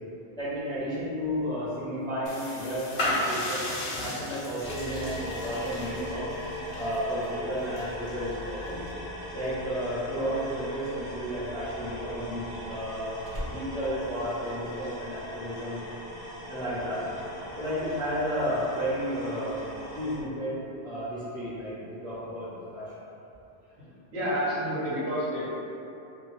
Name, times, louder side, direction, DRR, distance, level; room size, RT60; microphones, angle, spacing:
voice 1, 0.4-3.6 4.0-6.3 6.7-8.8 9.3-15.8 16.5-17.0 17.6-19.6 19.9-20.5 20.8-22.9, equal, 5° left, -12 dB, 0.6 m, -32 dB
sound 1, 2.3-8.9, left 1 dB, 70° left, 0.8 m, -35 dB
sound 2, 4.6-20.2, left 1 dB, 30° right, 0.9 m, -39 dB
Slam, 11.8-15.1 15.3-15.8, equal, 55° right, 0.3 m, -42 dB
voice 2, 23.8-25.4, equal, 85° right, -10 dB, 1.2 m, -30 dB
2.6 x 2.2 x 3.1 m, 2.9 s
omnidirectional pair, 1.1 m